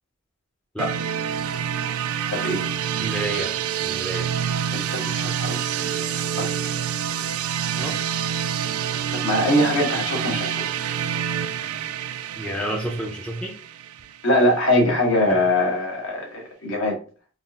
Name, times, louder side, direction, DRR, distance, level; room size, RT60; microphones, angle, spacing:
sound 1, 0.8-14.5, right 8 dB, 85° right, 0.3 m, -27 dB
voice 1, 2.3-2.7 4.7-6.5 9.1-10.6 14.2-17.0, left 1 dB, 65° left, 1.4 m, -23 dB
voice 2, 3.0-3.5 3.8-4.3 7.8-7.9 12.4-13.5, right 1 dB, 5° left, 0.6 m, -29 dB
4.1 x 2.5 x 3.6 m
head